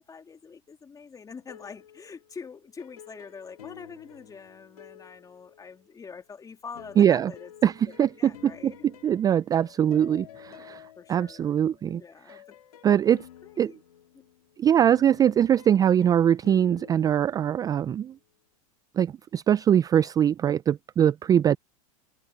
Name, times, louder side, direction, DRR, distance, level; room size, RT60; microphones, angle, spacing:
voice 1, 0.0-7.5 7.8-8.9 11.0-11.5 11.8-12.6 12.9-13.0 13.4-13.8 14.1-14.2 21.4-21.5, left 5 dB, 20° left, 3.1 m, -45 dB
sound 1, 1.4-6.1 6.7-18.0, left 11 dB, 85° left, 3.3 m, -51 dB
voice 2, 7.0-7.3 7.6-8.7 9.0-10.8 11.1-12.0 12.3-12.4 12.8-13.2 13.6-13.7 14.6-18.1 19.0-21.6, right 9 dB, 20° right, 0.3 m, -22 dB
hypercardioid pair, 110°, 19 cm